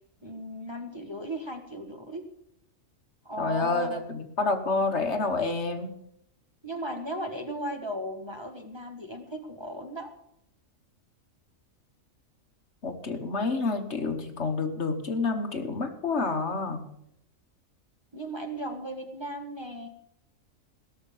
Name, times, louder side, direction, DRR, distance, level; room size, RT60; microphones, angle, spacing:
voice 1, 0.2-2.2 3.2-4.0 6.6-10.1 18.1-19.9, right 1 dB, 20° right, 3 dB, 1.5 m, -36 dB
voice 2, 3.4-5.9 12.8-16.8, left 3 dB, 55° left, 6 dB, 1.5 m, -28 dB
17.0 x 6.8 x 7.1 m, 0.77 s
omnidirectional pair, 1.4 m